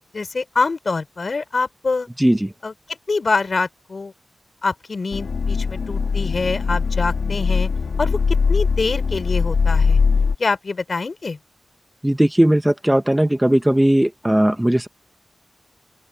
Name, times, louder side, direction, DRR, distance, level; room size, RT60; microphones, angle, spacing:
voice 1, 0.1-2.1 2.6-4.1 4.6-7.7 8.0-10.0 10.4-11.4, left 4 dB, 60° left, 4.0 m, -25 dB
voice 2, 2.2-2.5 12.0-14.9, right 1 dB, 10° right, 1.6 m, -17 dB
sound 1, 5.1-10.3, left 5 dB, 80° left, 2.2 m, -20 dB
open air
cardioid pair, 45°, 0 cm